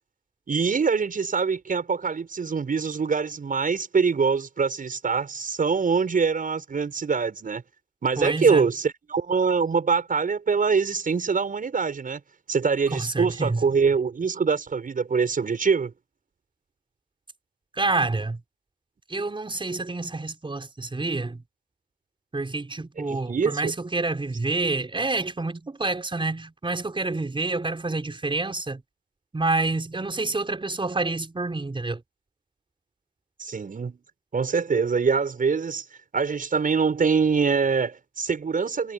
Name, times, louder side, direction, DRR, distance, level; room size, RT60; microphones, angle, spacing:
voice 1, 0.5-7.6 8.0-12.2 12.5-15.9 23.0-23.7 33.4-34.0 34.3-35.9 36.1-38.9, right 5 dB, 50° right, 7.0 m, -24 dB
voice 2, 8.2-8.7 12.9-13.6 17.7-18.4 19.1-21.4 22.3-28.8 29.3-32.0, right 3 dB, 30° right, 5.5 m, -28 dB
supercardioid pair, 50°, 18 cm